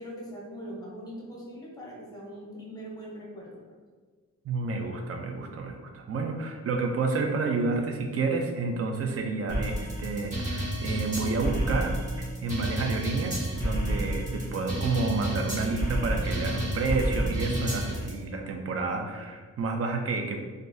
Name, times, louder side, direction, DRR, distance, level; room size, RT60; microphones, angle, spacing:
voice 1, 0.0-3.6, equal, 10° left, -4 dB, 0.7 m, -41 dB
voice 2, 4.4-12.0 12.4-20.5, right 3 dB, 50° right, 3 dB, 0.4 m, -30 dB
sound 1, 9.5-18.1, right 1 dB, 25° right, 1.3 m, -30 dB
3.7 x 2.5 x 2.6 m, 1.4 s
wide cardioid pair, 175°, 32 cm